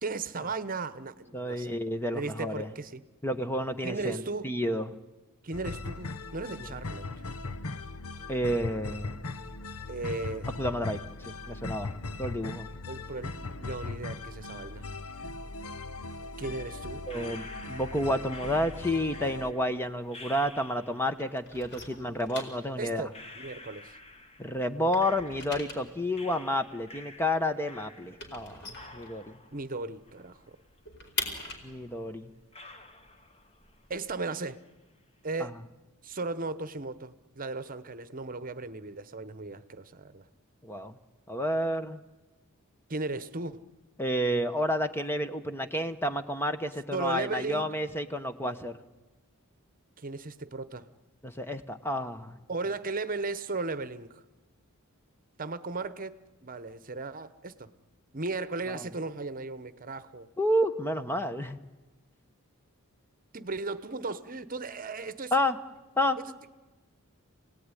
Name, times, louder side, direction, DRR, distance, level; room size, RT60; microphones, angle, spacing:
voice 1, 0.0-1.8 2.1-3.1 3.8-4.5 5.4-7.1 9.9-10.5 12.9-14.8 16.4-17.0 22.8-24.0 29.5-30.4 33.9-34.6 35.2-35.6 36.0-40.2 42.9-43.6 46.9-47.7 50.0-50.9 52.5-54.2 55.4-57.7 58.1-60.3 63.3-65.3 66.2-66.3, right 3 dB, 40° right, 14 dB, 1.0 m, -36 dB
voice 2, 1.3-2.7 3.2-4.9 8.3-9.2 10.6-11.0 11.5-11.9 12.2-12.7 17.1-23.1 24.4-29.3 31.6-32.3 35.4-35.5 40.6-40.9 41.3-42.0 44.0-48.8 51.2-52.4 58.7-58.8 60.4-61.6 65.3-65.6 66.0-66.2, equal, 10° left, 9 dB, 0.9 m, -30 dB
sound 1, 5.5-19.5, left 3 dB, 80° left, 1.1 m, -39 dB
sound 2, 17.1-21.2 22.3-22.4 23.1-25.8 26.1-28.4 28.7-30.8 31.1-31.2 31.9-32.0 32.5-33.8 34.1-34.7, left 2 dB, 25° left, 1.6 m, -50 dB
sound 3, 19.5-20.9 21.1-24.4 24.7-29.7 30.0-30.1 30.4-34.1, left 2 dB, 55° left, 4.7 m, -42 dB
27.5 x 18.5 x 9.8 m, 1.2 s
head